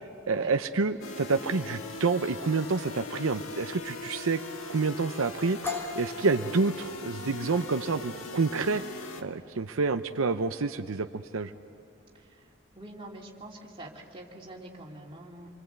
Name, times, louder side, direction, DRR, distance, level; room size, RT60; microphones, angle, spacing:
voice 1, 0.3-4.4 4.7-5.6 6.0-8.8 9.2-11.5, right 4 dB, 80° right, 8 dB, 0.7 m, -28 dB
sound 1, 1.0-9.2, left 2 dB, 80° left, 1.5 m, -40 dB
sound 2, 5.6-13.3, left 4 dB, 10° left, 2.6 m, -42 dB
voice 2, 12.8-15.6, right 1 dB, 25° right, -3 dB, 3.0 m, -45 dB
28.0 x 23.5 x 8.1 m, 2.9 s
head